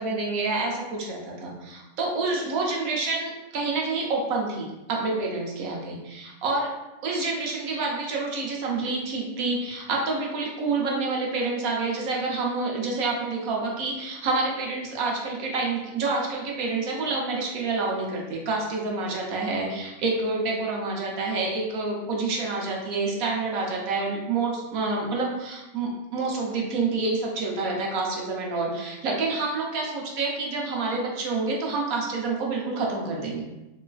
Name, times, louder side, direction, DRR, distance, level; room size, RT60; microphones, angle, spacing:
voice 1, 0.0-6.7 7.0-33.4, right 3 dB, 80° right, -1 dB, 1.1 m, -28 dB
4.0 x 2.4 x 2.3 m, 1.0 s
omnidirectional pair, 1.5 m